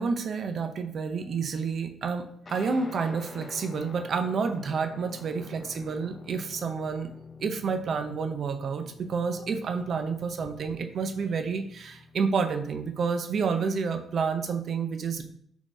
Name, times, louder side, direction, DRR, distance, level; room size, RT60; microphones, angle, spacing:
voice 1, 0.0-7.1 7.4-15.2, right 5 dB, 55° right, 7 dB, 0.4 m, -29 dB
Guitar, 2.5-12.2, left 4 dB, 30° left, 0.4 m, -47 dB
3.3 x 2.6 x 3.1 m, 0.66 s
cardioid pair, 90°, 0 cm